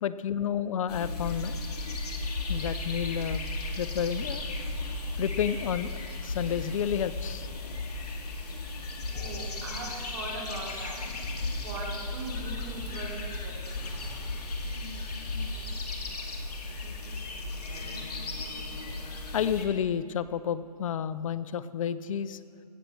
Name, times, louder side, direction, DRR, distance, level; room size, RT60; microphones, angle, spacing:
voice 1, 0.0-1.6 2.5-3.4 3.7-4.5 5.2-7.5 19.3-22.4, left 8 dB, 55° left, 15 dB, 0.5 m, -30 dB
sound 1, 0.9-19.7, left 2 dB, 75° left, 2.1 m, -35 dB
voice 2, 9.1-11.1 11.6-13.6 14.8-14.9 17.3-17.6, right 2 dB, 50° right, -1 dB, 3.6 m, -40 dB
16.0 x 7.4 x 6.9 m, 2.3 s
hypercardioid pair, 140°, 20 cm